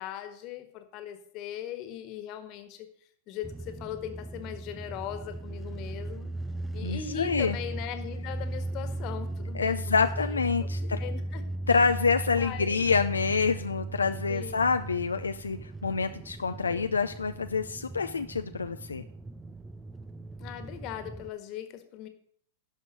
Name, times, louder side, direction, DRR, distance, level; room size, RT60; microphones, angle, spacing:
voice 1, 0.0-2.9 3.3-6.3 6.7-11.4 12.3-13.1 14.3-14.7 16.6-16.9 20.4-22.1, left 10 dB, 45° left, 8 dB, 1.5 m, -39 dB
sound 1, 3.4-21.3, right 2 dB, 10° right, 0.5 m, -37 dB
voice 2, 6.8-7.5 9.5-11.0 11.7-19.0, left 5 dB, 85° left, 9 dB, 0.4 m, -27 dB
12.0 x 5.2 x 6.4 m, 0.62 s
hypercardioid pair, 100°, 0 cm